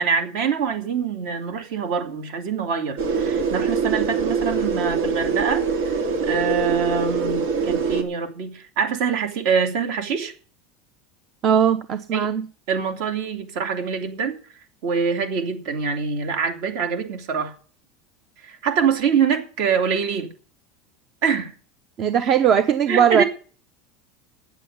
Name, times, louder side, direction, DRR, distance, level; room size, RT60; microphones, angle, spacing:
voice 1, 0.0-6.0 6.3-10.3 12.1-12.3 12.7-14.4 14.8-17.5 18.4-20.3 21.2-21.5 22.9-23.2, right 6 dB, 60° right, 2.7 m, -24 dB
sound 1, 3.0-8.0, right 5 dB, 80° right, 2.7 m, -23 dB
voice 2, 11.4-12.4 22.0-23.2, right 8 dB, 35° right, 0.7 m, -19 dB
9.4 x 7.7 x 9.4 m
supercardioid pair, 155°, 0 cm